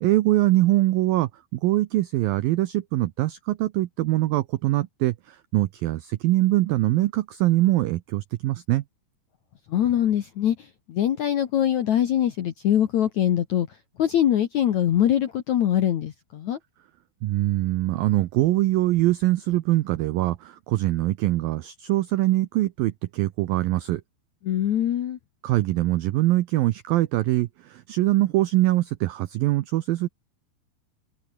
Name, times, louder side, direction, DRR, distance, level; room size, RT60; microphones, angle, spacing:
voice 1, 0.0-8.8 17.2-24.0 25.4-30.1, right 16 dB, 80° right, 2.1 m, -23 dB
voice 2, 9.7-13.7 14.0-16.6 24.4-25.2, left 10 dB, 70° left, 1.8 m, -23 dB
omnidirectional pair, 5.2 m